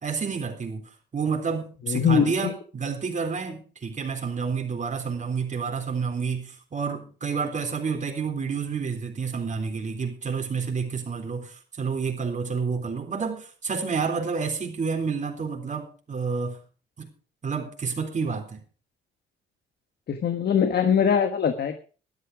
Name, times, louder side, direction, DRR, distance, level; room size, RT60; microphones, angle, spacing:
voice 1, 0.0-16.6 17.0-17.1 17.4-18.6, right 5 dB, 40° right, 3.8 m, -29 dB
voice 2, 1.9-2.5 20.1-21.7, left 7 dB, 55° left, 1.4 m, -22 dB
12.5 x 12.0 x 4.8 m
cardioid pair, 90°, 20 cm